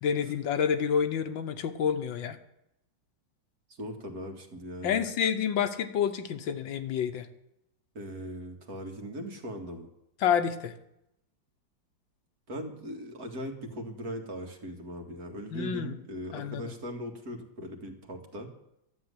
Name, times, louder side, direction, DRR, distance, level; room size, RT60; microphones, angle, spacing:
voice 1, 0.0-2.4 4.8-7.3 10.2-10.7 15.5-16.0 16.3-16.7, left 7 dB, 75° left, 8 dB, 1.7 m, -28 dB
voice 2, 3.8-5.0 7.9-9.9 12.5-18.5, equal, 50° right, 3 dB, 2.3 m, -39 dB
12.5 x 7.9 x 9.8 m, 0.82 s
omnidirectional pair, 2.1 m